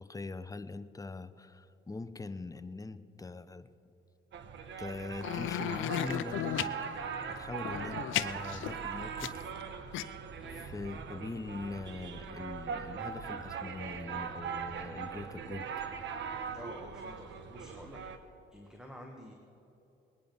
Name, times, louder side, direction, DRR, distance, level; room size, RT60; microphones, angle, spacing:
voice 1, 0.0-3.7 4.8-6.7 7.3-9.5 9.9-10.0 10.5-15.7, left 3 dB, 15° left, 12 dB, 0.7 m, -42 dB
sound 1, 4.3-18.2, right 6 dB, 65° right, 1.1 m, -40 dB
sound 2, 5.2-6.7 7.6-9.6 9.9-10.0, left 13 dB, 80° left, 0.6 m, -34 dB
voice 2, 16.5-18.1 18.5-19.3, equal, 5° right, 1 dB, 1.6 m, -49 dB
20.5 x 9.9 x 5.3 m, 2.9 s
cardioid pair, 90°, 20 cm